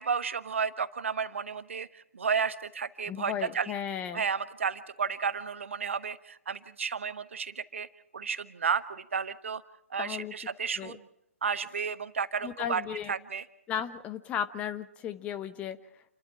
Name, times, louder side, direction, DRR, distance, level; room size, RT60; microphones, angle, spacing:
voice 1, 0.0-3.7 4.1-7.9 8.1-9.6 9.9-11.0 11.4-12.8 13.1-13.4, right 6 dB, 60° right, 13 dB, 1.2 m, -32 dB
voice 2, 3.1-4.2 10.0-10.3 10.8-11.0 12.4-13.1 13.7-16.0, left 9 dB, 15° left, 11 dB, 1.1 m, -35 dB
29.5 x 12.0 x 9.0 m, 0.78 s
figure-of-eight pair, 125°, 8 cm